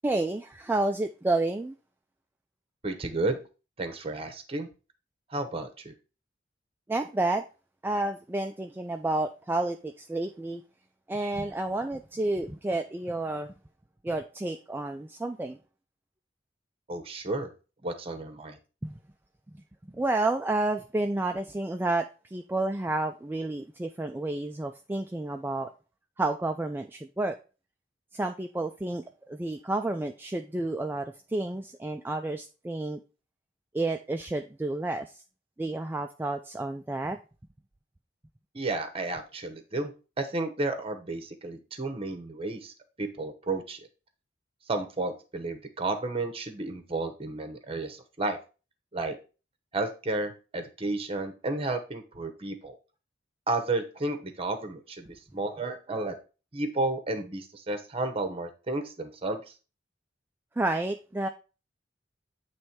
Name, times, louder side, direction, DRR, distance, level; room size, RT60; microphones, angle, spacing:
voice 1, 0.0-1.8 6.9-7.4 7.8-10.6 11.1-13.5 14.0-15.6 18.8-19.0 19.5-25.7 26.2-27.4 28.1-33.0 33.7-35.2 35.6-37.2 60.6-61.3, right 2 dB, 10° right, 5 dB, 0.3 m, -30 dB
voice 2, 2.8-3.4 3.8-4.7 5.3-5.9 16.9-17.5 17.8-18.6 38.5-39.9 40.2-42.7 43.0-43.8 44.7-48.4 48.9-49.2 49.7-52.8 53.5-56.1 56.5-59.4, right 2 dB, 30° right, 7 dB, 0.9 m, -32 dB
8.0 x 3.2 x 4.4 m, 0.34 s
head